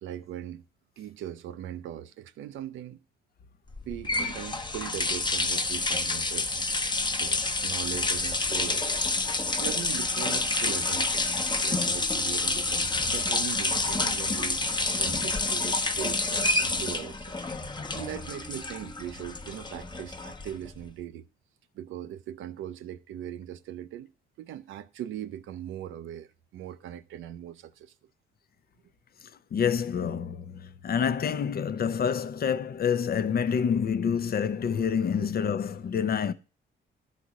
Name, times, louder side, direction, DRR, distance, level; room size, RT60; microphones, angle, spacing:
voice 1, 0.0-0.6 1.0-3.0 3.9-6.7 7.2-9.1 9.6-11.3 11.6-14.6 14.9-17.4 17.9-21.2 21.7-24.1 24.4-27.9 35.2-35.3, right 11 dB, 80° right, 0.6 m, -40 dB
sound 1, 3.7-20.8, left 3 dB, 20° left, 0.9 m, -28 dB
voice 2, 29.5-36.3, left 7 dB, 50° left, 0.7 m, -27 dB
11.5 x 4.2 x 6.2 m
cardioid pair, 90°, 20 cm